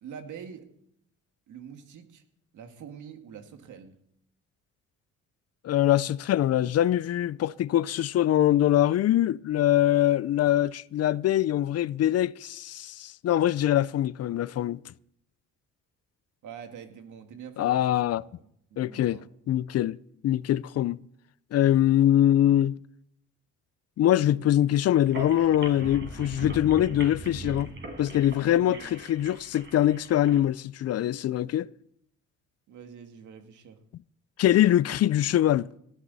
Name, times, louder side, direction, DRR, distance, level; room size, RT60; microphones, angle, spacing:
voice 1, 0.0-0.7 1.5-2.2 2.5-4.0 16.4-18.0 18.3-19.2 28.5-28.9 32.7-33.8, right 7 dB, 75° right, 2.1 m, -45 dB
voice 2, 5.6-14.8 17.6-18.2 18.8-19.2 19.5-20.0 20.2-21.0 21.5-22.8 24.0-27.7 28.0-31.7 34.4-35.7, left 12 dB, 55° left, 0.5 m, -23 dB
sound 1, 25.0-30.4, right 2 dB, 40° right, 5.0 m, -40 dB
18.5 x 13.0 x 4.1 m
cardioid pair, 90°, 30 cm